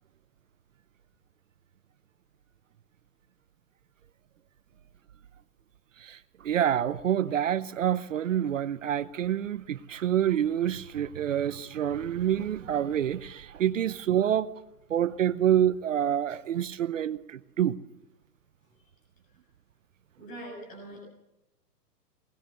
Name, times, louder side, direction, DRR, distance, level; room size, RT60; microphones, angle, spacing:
voice 1, 6.0-14.5 14.9-17.8, right 10 dB, 50° right, 0.8 m, -27 dB
voice 2, 20.2-21.0, right 1 dB, 15° left, 7.0 m, -42 dB
21.0 x 20.0 x 6.7 m
hypercardioid pair, 170°, 50 cm